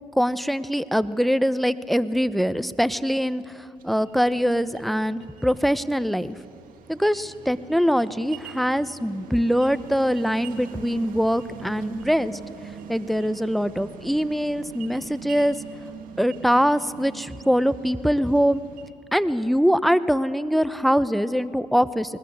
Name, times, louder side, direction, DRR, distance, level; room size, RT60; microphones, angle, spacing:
voice 1, 0.1-6.3 6.9-12.4 12.9-15.6 16.2-18.6 19.1-22.2, equal, ahead, 15 dB, 0.9 m, -23 dB
sound 1, 3.8-18.9, right 7 dB, 70° right, 1.9 m, -43 dB
20.5 x 20.0 x 8.1 m, 2.3 s
hypercardioid pair, 55°, 15 cm